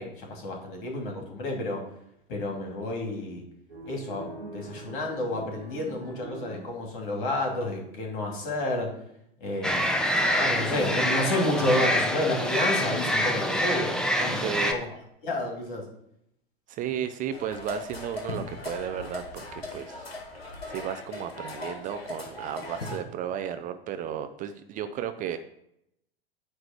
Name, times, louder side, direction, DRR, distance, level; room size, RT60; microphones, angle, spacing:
voice 1, 0.0-1.8 2.3-3.4 3.9-8.9 9.4-14.9 15.2-15.8, left 1 dB, 55° left, 0 dB, 2.8 m, -30 dB
sound 1, 3.7-7.1, right 2 dB, 80° right, 1.4 m, -42 dB
sound 2, 9.6-14.7, equal, ahead, 0.8 m, -26 dB
voice 2, 14.4-14.8 16.7-20.1 20.7-25.4, right 9 dB, 25° right, 9 dB, 0.5 m, -34 dB
sound 3, 17.3-23.0, left 2 dB, 80° left, 1.6 m, -39 dB
9.5 x 3.3 x 6.7 m, 0.78 s
figure-of-eight pair, 85°, 30 cm